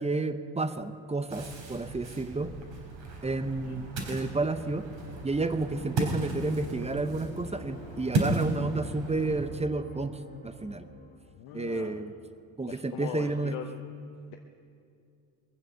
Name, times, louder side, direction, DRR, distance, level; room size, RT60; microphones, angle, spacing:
voice 1, 0.0-2.5 3.2-4.9 5.2-10.9 11.5-12.1 12.6-13.6, right 3 dB, 15° right, 11 dB, 0.7 m, -31 dB
Ocean, 1.3-9.5, right 2 dB, 65° right, 3.7 m, -35 dB
sound 1, 5.7-11.5, left 3 dB, 20° left, 1.3 m, -48 dB
voice 2, 11.3-12.0 12.6-13.7 14.3-14.4, left 9 dB, 80° left, 4 dB, 1.0 m, -41 dB
21.5 x 7.6 x 6.8 m, 2.4 s
supercardioid pair, 80°, 48 cm